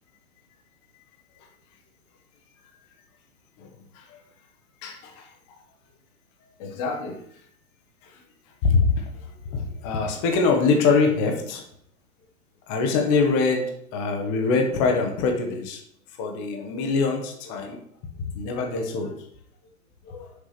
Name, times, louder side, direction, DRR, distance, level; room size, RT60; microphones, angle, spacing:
voice 1, 3.6-4.2 4.8-5.6 6.6-7.2 8.0-8.2 8.6-11.6 12.7-15.8 16.2-17.8 18.3-19.1 20.0-20.3, left 4 dB, 20° left, 3 dB, 0.9 m, -24 dB
6.6 x 4.8 x 5.8 m, 0.65 s
hypercardioid pair, 160°, 43 cm